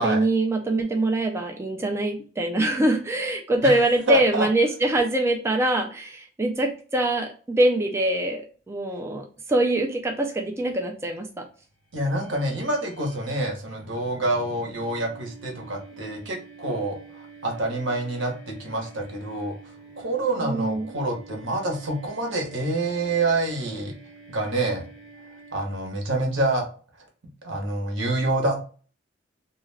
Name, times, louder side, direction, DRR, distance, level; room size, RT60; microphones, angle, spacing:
voice 1, 0.0-11.4 20.4-20.9, right 1 dB, 15° right, 2 dB, 0.3 m, -24 dB
voice 2, 4.1-4.5 11.9-19.5 20.0-23.9 24.3-24.8 25.5-26.7 27.4-28.7, right 2 dB, 85° right, 2 dB, 0.9 m, -27 dB
sound 1, 12.0-26.0, right 3 dB, 5° left, 1.1 m, -48 dB
2.3 x 2.2 x 3.2 m, 0.39 s
head